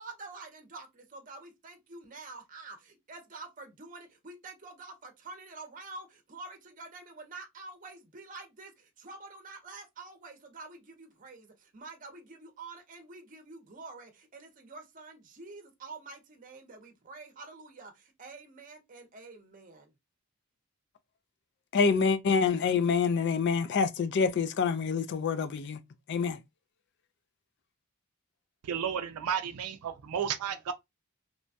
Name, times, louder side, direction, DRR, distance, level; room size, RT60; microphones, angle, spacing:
voice 1, 0.0-19.9, right 3 dB, 35° right, 0.7 m, -47 dB
voice 2, 21.7-25.8 26.1-26.4, left 5 dB, 50° left, 0.3 m, -26 dB
voice 3, 28.6-30.7, right 8 dB, 85° right, 0.4 m, -32 dB
3.0 x 2.2 x 2.6 m
head